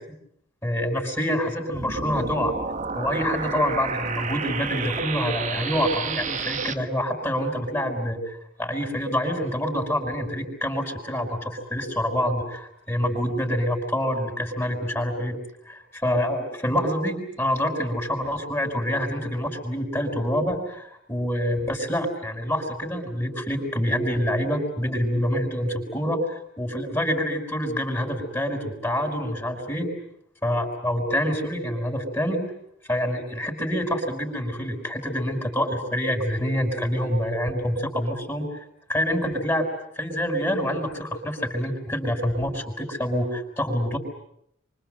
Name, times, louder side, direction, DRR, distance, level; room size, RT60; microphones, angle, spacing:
voice 1, 0.6-2.5 2.9-15.4 15.7-29.9 30.4-32.4 32.9-38.6 38.9-39.7 40.0-44.0, equal, 15° left, 2 dB, 5.9 m, -26 dB
sound 1, 1.7-6.7, right 5 dB, 40° right, 1.7 m, -30 dB
28.5 x 26.0 x 7.9 m, 0.74 s
head